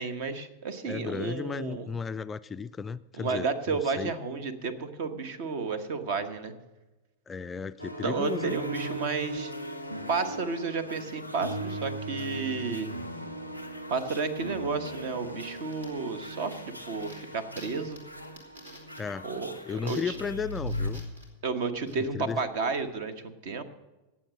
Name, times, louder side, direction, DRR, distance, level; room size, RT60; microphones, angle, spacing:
voice 1, 0.0-1.9 3.2-6.5 8.0-9.5 10.1-12.9 13.9-18.0 19.2-20.2 21.4-23.6, right 4 dB, 50° right, 11 dB, 1.2 m, -32 dB
voice 2, 0.9-4.1 7.3-8.6 19.0-19.3 19.6-21.0 21.9-22.4, left 6 dB, 20° left, 13 dB, 0.3 m, -34 dB
sound 1, 7.8-20.9, right 1 dB, 90° right, 1.1 m, -38 dB
sound 2, 14.0-22.9, right 1 dB, 75° right, 2.8 m, -53 dB
17.5 x 7.3 x 6.3 m, 1.1 s
figure-of-eight pair, 90°, 0 cm